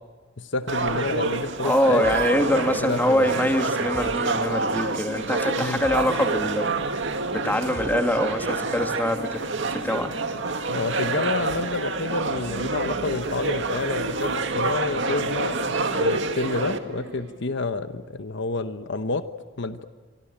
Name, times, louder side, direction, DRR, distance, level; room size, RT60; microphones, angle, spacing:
voice 1, 0.4-2.2 2.7-3.5 5.6-5.8 10.7-19.2 19.6-19.9, left 3 dB, 65° left, 10 dB, 1.0 m, -29 dB
sound 1, 0.7-16.8, right 3 dB, 65° right, 2.1 m, -27 dB
voice 2, 1.6-6.7 7.3-10.1, equal, 10° left, 4 dB, 2.7 m, -24 dB
sound 2, 2.0-2.9 3.2-9.2, equal, 15° right, 4.1 m, -46 dB
sound 3, 4.0-4.7 6.0-6.9 7.5-8.3 9.5-10.0 10.3-10.4 11.3-12.0 13.1-13.9 14.9-15.7 16.6-17.4, right 1 dB, 80° right, 5.4 m, -43 dB
25.5 x 24.5 x 8.8 m, 1.5 s
head